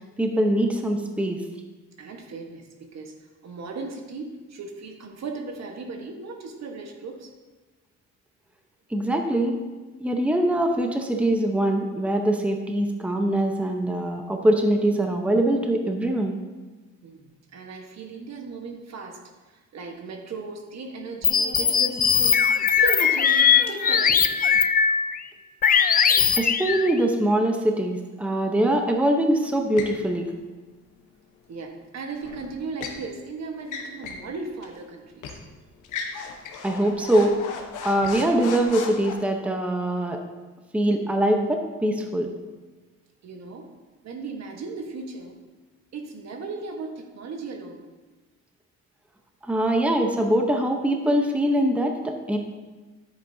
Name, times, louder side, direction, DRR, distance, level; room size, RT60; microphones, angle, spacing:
voice 1, 0.2-1.4 8.9-9.6 10.0-16.4 26.4-30.3 36.6-37.4 37.8-40.2 40.7-42.3 49.4-52.4, right 1 dB, 5° right, 3 dB, 0.8 m, -23 dB
voice 2, 2.0-3.2 3.4-7.3 17.0-19.2 19.5-24.6 31.5-35.3 43.2-43.7 44.0-45.4 45.9-47.8, right 4 dB, 60° right, 3 dB, 1.3 m, -37 dB
sound 1, 21.2-25.2 25.6-26.9, left 7 dB, 30° left, 0.4 m, -20 dB
sound 2, 29.8-30.0 32.2-33.0 33.6-34.3 34.6-34.7 35.2-35.4 35.8-39.1, left 5 dB, 85° left, 1.1 m, -36 dB
10.0 x 8.3 x 2.7 m, 1.3 s
cardioid pair, 90°, 30 cm